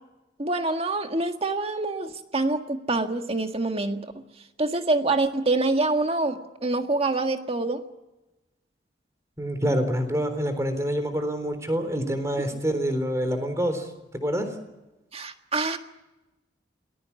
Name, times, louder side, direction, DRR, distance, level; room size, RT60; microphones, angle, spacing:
voice 1, 0.4-4.2 4.6-7.8 12.5-12.6 15.1-15.8, right 2 dB, 35° right, 6 dB, 1.7 m, -26 dB
voice 2, 9.4-14.5, equal, 15° right, 8 dB, 3.8 m, -27 dB
28.0 x 19.5 x 7.2 m, 1.0 s
head